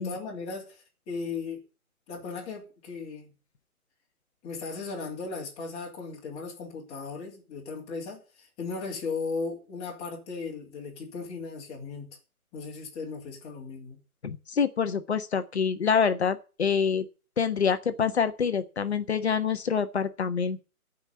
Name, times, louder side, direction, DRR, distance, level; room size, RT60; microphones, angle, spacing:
voice 1, 0.0-1.6 2.1-3.3 4.4-12.1 12.5-14.0, left 4 dB, 15° left, 3.0 m, -37 dB
voice 2, 14.2-17.0 17.4-20.6, left 6 dB, 45° left, 1.4 m, -26 dB
14.0 x 5.6 x 8.0 m
figure-of-eight pair, 145°, 44 cm